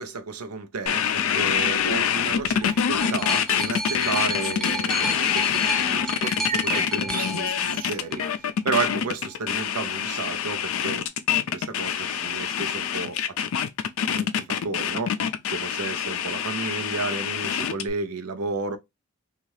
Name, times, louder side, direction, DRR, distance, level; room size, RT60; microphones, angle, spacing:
voice 1, 0.0-8.2 8.6-11.0 11.3-13.4 14.2-15.1 15.5-18.8, right 4 dB, 90° right, 0.6 m, -32 dB
sound 1, 0.9-17.9, left 8 dB, 70° left, 0.4 m, -25 dB
sound 2, 2.4-8.3 9.2-9.3, right 1 dB, ahead, 0.4 m, -33 dB
sound 3, 3.5-4.1 6.2-8.0, right 5 dB, 40° right, 0.8 m, -33 dB
2.7 x 2.4 x 3.1 m
head